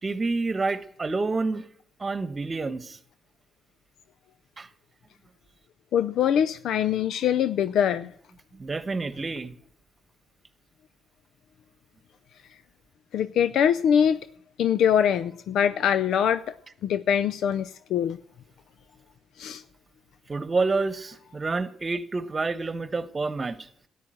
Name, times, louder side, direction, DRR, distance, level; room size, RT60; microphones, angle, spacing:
voice 1, 0.0-1.7 2.0-3.0 4.6-4.7 8.5-9.5 20.3-23.7, right 3 dB, 30° right, 1.2 m, -28 dB
voice 2, 5.9-8.1 13.1-14.2 14.6-16.5 16.8-18.2 19.4-19.6, left 9 dB, 75° left, 0.5 m, -23 dB
13.5 x 10.0 x 7.7 m
cardioid pair, 90°, 0 cm